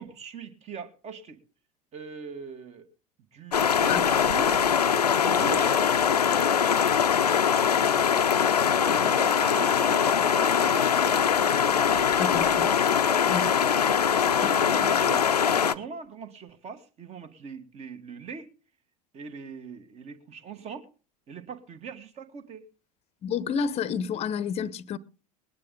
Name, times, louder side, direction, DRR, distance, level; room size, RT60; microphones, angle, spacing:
voice 1, 0.0-1.4 1.9-2.9 3.3-4.6 5.1-5.8 8.9-10.9 14.3-18.5 19.1-20.9 21.3-22.7, right 6 dB, 35° right, 1.7 m, -41 dB
sound 1, 3.5-15.7, left 7 dB, 80° left, 0.6 m, -22 dB
voice 2, 12.2-12.7 13.3-13.5 14.4-14.5 23.2-25.0, left 7 dB, 30° left, 0.8 m, -29 dB
20.0 x 9.6 x 3.8 m
figure-of-eight pair, 75°, 20 cm